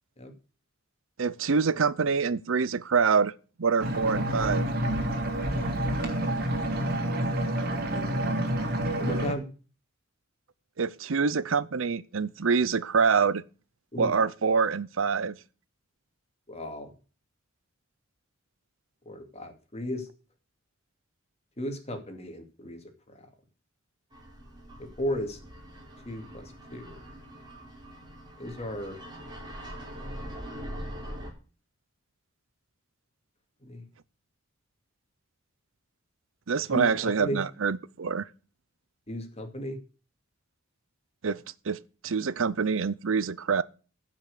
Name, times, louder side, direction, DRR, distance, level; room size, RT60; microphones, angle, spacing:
voice 1, 1.2-3.3 3.6-4.7 10.8-13.4 14.0-15.4 36.5-38.3 41.2-41.4 41.7-43.6, right 5 dB, 80° right, 0.7 m, -26 dB
sound 1, 3.8-9.3, right 1 dB, 50° right, 3.0 m, -28 dB
voice 2, 9.0-9.5 13.9-14.1 16.5-16.9 19.1-20.1 21.6-22.8 24.8-25.4 26.1-26.9 28.4-29.0 33.6-33.8 36.7-37.4 39.1-39.8, equal, 30° left, 2.4 m, -35 dB
sound 2, 24.1-31.3, equal, 20° right, 4.6 m, -42 dB
15.0 x 5.9 x 6.7 m
head